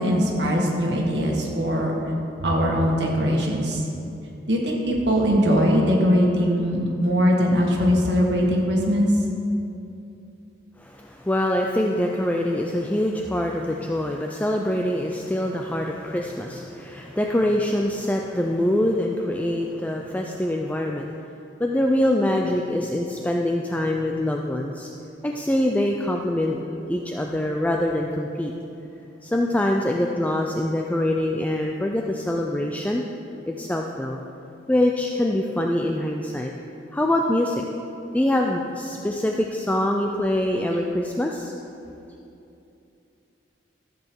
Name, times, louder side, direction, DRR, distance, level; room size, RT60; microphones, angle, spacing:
voice 1, 0.0-2.0 2.4-3.8 4.5-9.1, equal, 70° right, -1 dB, 1.8 m, -21 dB
voice 2, 10.8-21.1 21.6-24.9 25.2-26.6 26.9-28.5 29.2-33.0 33.5-34.2 34.7-36.5 36.9-37.6 38.1-41.5, left 1 dB, 10° left, 1 dB, 0.4 m, -24 dB
14.0 x 7.8 x 4.6 m, 2.8 s
head